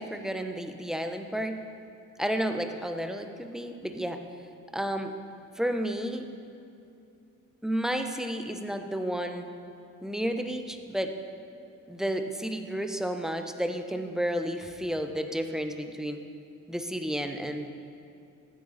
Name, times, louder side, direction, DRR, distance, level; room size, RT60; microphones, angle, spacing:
voice 1, 0.0-1.6 2.2-4.2 4.7-5.1 5.6-6.3 7.6-9.5 10.0-11.1 11.9-16.2 16.7-17.7, equal, ahead, 6 dB, 1.1 m, -31 dB
15.0 x 9.3 x 4.3 m, 2.6 s
supercardioid pair, 60°, 34 cm